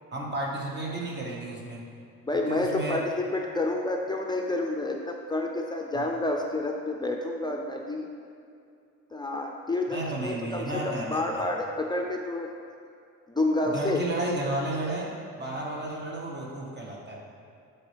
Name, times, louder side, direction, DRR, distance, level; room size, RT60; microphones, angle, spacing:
voice 1, 0.1-1.8 2.5-3.0 5.9-6.0 9.9-11.4 13.6-17.2, right 1 dB, 35° right, -3 dB, 1.6 m, -32 dB
voice 2, 2.2-8.1 9.1-12.5 13.3-14.0, left 2 dB, 15° left, 0 dB, 0.5 m, -29 dB
9.7 x 4.6 x 3.4 m, 2.5 s
cardioid pair, 90°, 30 cm